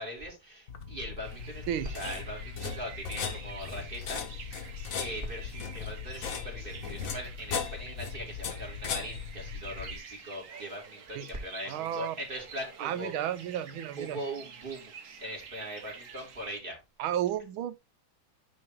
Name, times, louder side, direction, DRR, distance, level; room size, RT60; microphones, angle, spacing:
voice 1, 0.0-4.7 5.0-13.2 14.0-14.9 15.2-16.8, equal, 25° right, 2.9 m, -40 dB
sound 1, 0.7-10.0, left 6 dB, 50° left, 1.1 m, -38 dB
sound 2, 1.2-16.6, right 6 dB, 50° right, 1.1 m, -49 dB
voice 2, 11.7-12.1 12.8-14.2 17.0-17.8, right 11 dB, 80° right, 1.5 m, -32 dB
9.3 x 3.6 x 4.5 m
omnidirectional pair, 2.2 m